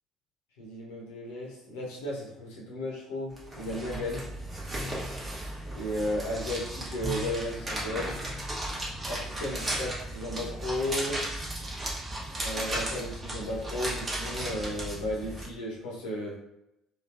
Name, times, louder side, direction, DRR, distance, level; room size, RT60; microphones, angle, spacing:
voice 1, 0.6-4.2 5.7-8.2 9.1-11.2 12.4-16.4, left 1 dB, 70° left, -3 dB, 0.9 m, -34 dB
sound 1, 3.4-15.5, right 1 dB, 25° right, 1.0 m, -35 dB
3.1 x 2.9 x 2.4 m, 0.85 s
figure-of-eight pair, 55°, 0 cm